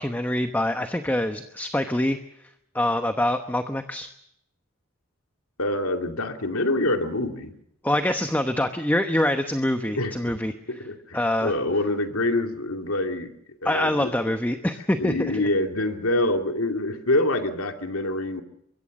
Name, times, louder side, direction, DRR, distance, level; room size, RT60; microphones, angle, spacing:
voice 1, 0.0-2.2 2.7-4.1 7.8-10.5 11.1-11.5 13.6-15.4, left 1 dB, 10° left, 7 dB, 1.0 m, -25 dB
voice 2, 5.6-7.5 9.8-10.4 10.7-13.3 13.6-14.3 15.0-18.4, left 1 dB, 85° left, 5 dB, 2.5 m, -26 dB
24.5 x 22.0 x 6.5 m, 0.77 s
head